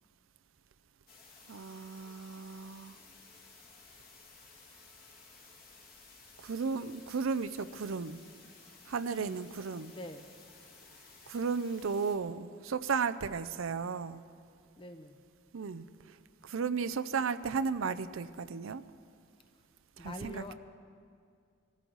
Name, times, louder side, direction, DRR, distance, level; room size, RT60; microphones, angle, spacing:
sound 1, 1.1-12.2, left 4 dB, 45° left, 2.4 m, -56 dB
voice 1, 1.5-3.0 6.4-8.2 8.9-9.9 11.3-14.2 15.5-16.2 16.4-18.8 20.0-20.5, right 5 dB, 80° right, 12 dB, 0.5 m, -34 dB
voice 2, 9.9-10.3 14.8-15.2 20.0-20.5, left 1 dB, 25° left, 7 dB, 0.8 m, -45 dB
24.0 x 14.5 x 4.0 m, 2.3 s
head